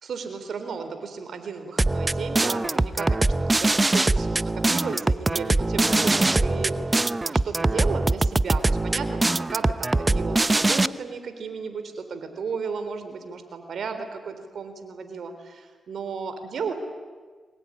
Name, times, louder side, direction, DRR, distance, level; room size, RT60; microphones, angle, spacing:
voice 1, 0.0-16.7, right 5 dB, 70° right, 8 dB, 3.8 m, -34 dB
sound 1, 1.8-10.9, right 2 dB, 25° right, 0.8 m, -22 dB
23.5 x 20.5 x 10.0 m, 1.4 s
cardioid pair, 60°, 0 cm